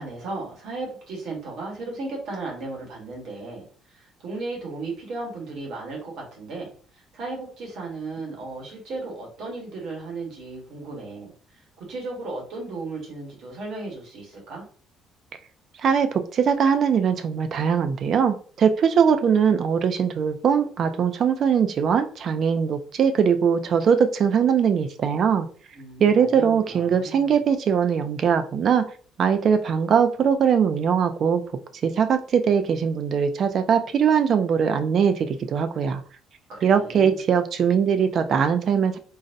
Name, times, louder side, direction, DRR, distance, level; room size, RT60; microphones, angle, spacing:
voice 1, 0.0-3.6 3.9-6.7 6.9-11.3 11.9-14.6 25.7-27.3 36.5-37.2, right 3 dB, 55° right, -1 dB, 1.2 m, -35 dB
voice 2, 15.8-25.5 26.0-28.9 29.2-31.4 31.8-36.0 36.6-39.0, right 7 dB, 40° right, 9 dB, 0.3 m, -21 dB
3.8 x 2.1 x 2.6 m, 0.42 s
cardioid pair, 175°, 0 cm